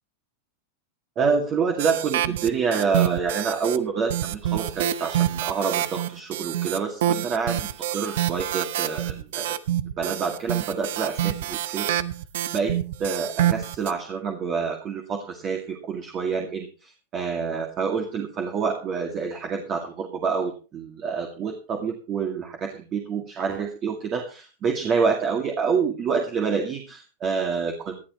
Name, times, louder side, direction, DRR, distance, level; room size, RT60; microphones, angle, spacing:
voice 1, 1.2-9.6 10.0-11.9 12.5-28.0, right 5 dB, 35° right, 3 dB, 2.2 m, -27 dB
sound 1, 1.8-3.8 4.1-13.9, right 12 dB, 75° right, 0.9 m, -27 dB
18.5 x 12.0 x 3.1 m, 0.33 s
supercardioid pair, 125°, 0 cm